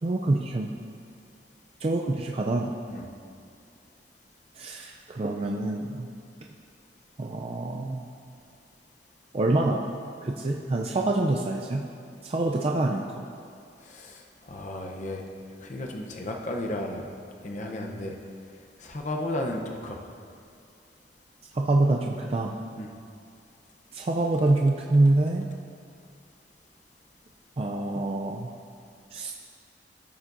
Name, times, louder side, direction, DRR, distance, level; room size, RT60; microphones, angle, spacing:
voice 1, 0.0-0.7 1.8-2.7 4.6-6.1 7.2-8.1 9.3-9.8 10.2-11.9 12.2-13.2 21.5-22.5 23.9-25.5 27.6-28.5 29.1-29.3, right 2 dB, 35° right, 0 dB, 0.4 m, -26 dB
voice 2, 13.8-15.3 15.6-17.1 17.4-18.2 18.8-20.0 22.8-22.9, left 1 dB, 45° left, 1 dB, 0.7 m, -34 dB
14.0 x 7.2 x 2.6 m, 2.4 s
head